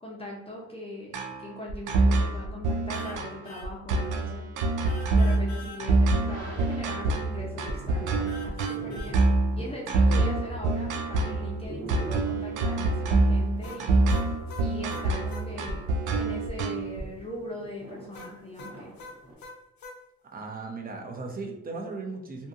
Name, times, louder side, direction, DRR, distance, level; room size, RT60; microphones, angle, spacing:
voice 1, 0.0-4.5 5.1-9.2 9.5-14.0 14.5-15.8 16.2-18.9, left 1 dB, 20° left, -3 dB, 0.6 m, -40 dB
sound 1, 1.1-17.0, right 2 dB, 80° right, 0.5 m, -25 dB
sound 2, 2.9-3.2 3.4-3.7 4.8-5.8 8.3-9.2 13.6-15.5 18.1-20.0, left 3 dB, 75° left, 0.7 m, -44 dB
sound 3, 6.1-19.3, right 1 dB, 65° right, 1.1 m, -46 dB
voice 2, 20.3-22.5, right 3 dB, 30° right, 2 dB, 0.6 m, -37 dB
2.6 x 2.6 x 2.4 m, 0.86 s
cardioid pair, 90°, 30 cm